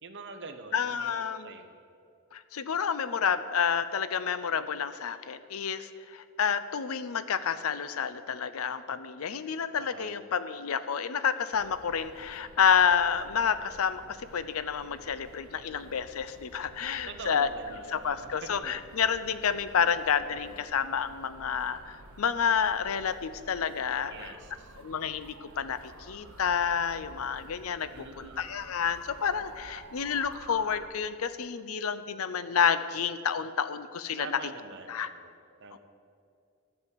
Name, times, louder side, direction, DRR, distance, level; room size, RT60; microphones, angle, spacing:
voice 1, 0.0-1.8 9.8-10.1 17.1-18.7 19.8-20.7 24.1-24.7 27.9-28.5 34.2-35.3 35.6-35.8, right 3 dB, 55° right, 6 dB, 1.0 m, -45 dB
voice 2, 0.7-1.5 2.3-17.5 17.9-24.3 24.8-25.8 26.1-27.9 28.2-34.3 34.9-35.1 35.7-35.8, left 7 dB, 80° left, 13 dB, 0.6 m, -29 dB
sound 1, 11.5-30.9, right 2 dB, 85° right, 1.0 m, -51 dB
12.5 x 5.4 x 8.3 m, 2.4 s
head